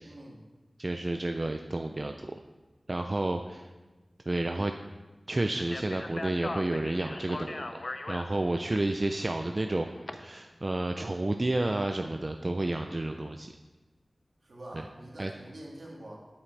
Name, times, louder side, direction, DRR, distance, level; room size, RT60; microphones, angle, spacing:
voice 1, 0.0-0.4 14.4-16.3, right 1 dB, 75° right, -3 dB, 1.9 m, -45 dB
voice 2, 0.8-2.4 2.9-3.7 4.3-4.7 5.3-7.8 8.1-9.9 10.1-13.5 15.2-15.3, right 2 dB, 40° right, 5 dB, 0.4 m, -30 dB
Speech, 5.6-10.1, left 2 dB, 55° left, 0.5 m, -40 dB
8.4 x 7.4 x 3.3 m, 1.2 s
wide cardioid pair, 70°, 0 cm